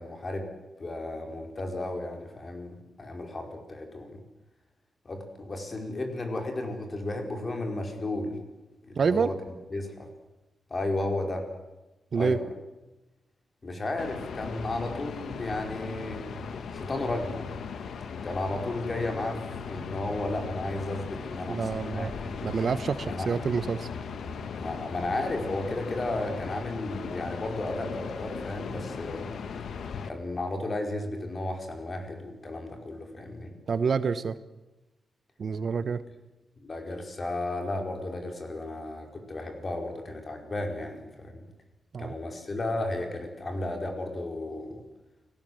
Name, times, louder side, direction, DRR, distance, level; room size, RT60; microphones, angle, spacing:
voice 1, 0.0-4.2 5.0-8.4 8.8-9.3 9.7-10.1 10.7-11.5 12.1-12.5 13.6-16.2 16.7-17.5 18.2-19.4 19.7-22.4 23.0-23.4 24.6-29.3 30.0-33.5 36.6-41.5 42.0-44.8, left 2 dB, 35° left, 4 dB, 4.9 m, -33 dB
voice 2, 9.0-9.3 12.1-12.4 21.5-22.1 22.4-23.9 33.7-34.4 35.4-36.0 41.9-42.1, right 5 dB, 55° right, 14 dB, 1.1 m, -27 dB
sound 1, 14.0-30.1, left 6 dB, 80° left, 1.8 m, -38 dB
29.5 x 18.5 x 7.9 m, 1.1 s
wide cardioid pair, 130°, 0 cm